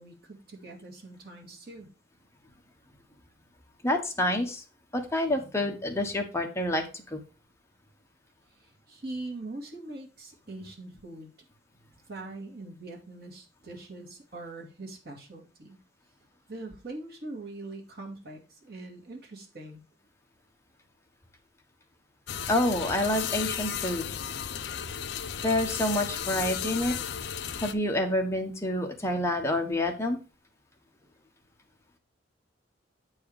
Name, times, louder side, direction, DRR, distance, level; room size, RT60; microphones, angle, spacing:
voice 1, 0.0-1.9 8.9-11.3 12.1-15.8 16.5-19.8, right 2 dB, 55° right, 0 dB, 2.4 m, -42 dB
voice 2, 3.8-4.6 4.9-7.2 22.5-24.1 25.4-27.0 27.6-30.2, left 1 dB, 15° left, 3 dB, 1.3 m, -28 dB
sound 1, 22.3-27.7, left 8 dB, 65° left, 0.6 m, -34 dB
8.4 x 4.7 x 4.8 m, 0.31 s
head